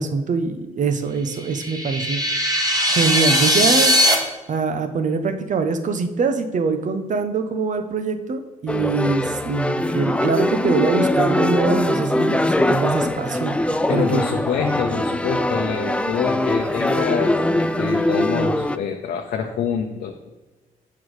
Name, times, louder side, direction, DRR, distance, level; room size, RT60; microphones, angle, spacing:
voice 1, 0.0-2.5 2.9-3.9 4.5-14.2, right 4 dB, 55° right, 8 dB, 0.9 m, -23 dB
sound 1, 1.4-4.1, equal, 25° right, 1.5 m, -19 dB
sound 2, 8.7-18.8, left 1 dB, 10° left, 0.4 m, -22 dB
voice 2, 13.9-20.3, left 7 dB, 80° left, 3 dB, 0.7 m, -26 dB
6.4 x 5.8 x 4.8 m, 1.2 s
cardioid pair, 70°, 15 cm